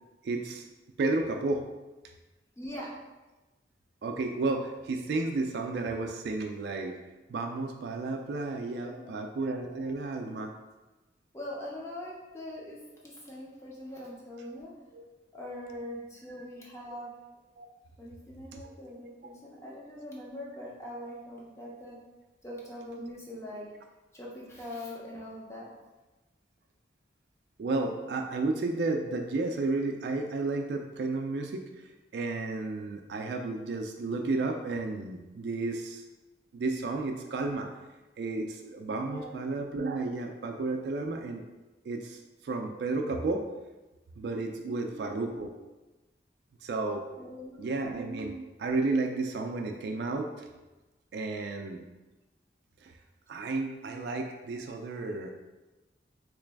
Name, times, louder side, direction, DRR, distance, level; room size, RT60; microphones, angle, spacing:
voice 1, 0.2-0.6 1.0-1.7 4.0-7.0 7.3-10.5 14.9-15.0 17.6-17.7 18.5-18.6 27.6-36.0 36.5-37.7 38.2-41.4 41.8-43.5 44.2-45.5 46.6-47.0 47.6-50.5 51.1-51.8 52.8-52.9 53.3-55.3, right 3 dB, 65° right, 3 dB, 0.3 m, -32 dB
voice 2, 2.6-2.9 8.8-9.2 10.2-10.5 11.3-14.7 15.3-17.1 18.0-22.0 22.4-23.7 24.1-25.7 39.1-39.4 44.6-45.2 47.2-47.8, left 1 dB, 15° left, -4 dB, 0.7 m, -42 dB
3.2 x 3.0 x 3.3 m, 1.1 s
head